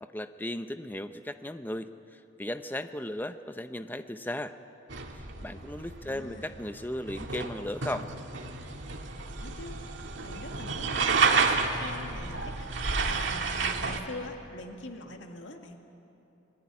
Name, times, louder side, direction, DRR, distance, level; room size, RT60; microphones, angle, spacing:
voice 1, 0.0-1.9 2.4-4.5 5.1-8.1, left 1 dB, 10° left, 9 dB, 0.7 m, -36 dB
sound 1, 4.9-14.0, right 4 dB, 80° right, 1.9 m, -30 dB
voice 2, 6.0-6.6 9.4-9.8 10.2-15.8, left 1 dB, 85° left, 3 dB, 2.0 m, -44 dB
27.0 x 20.0 x 9.8 m, 2.9 s
head